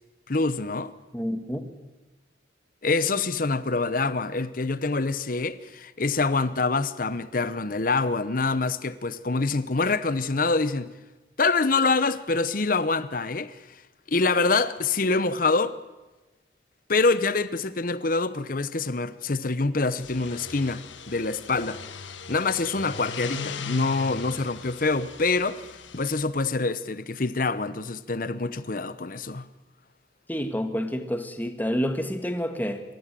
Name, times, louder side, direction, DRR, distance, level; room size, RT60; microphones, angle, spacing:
voice 1, 0.3-0.9 2.8-10.9 11.4-13.6 14.1-15.7 16.9-21.8 22.3-25.6 25.9-29.5, left 3 dB, 45° left, 0.9 m, -25 dB
voice 2, 1.1-1.7 30.3-32.8, equal, 10° left, 1.6 m, -28 dB
sound 1, 19.9-26.2, left 5 dB, 80° left, 1.4 m, -38 dB
26.5 x 14.0 x 7.6 m
head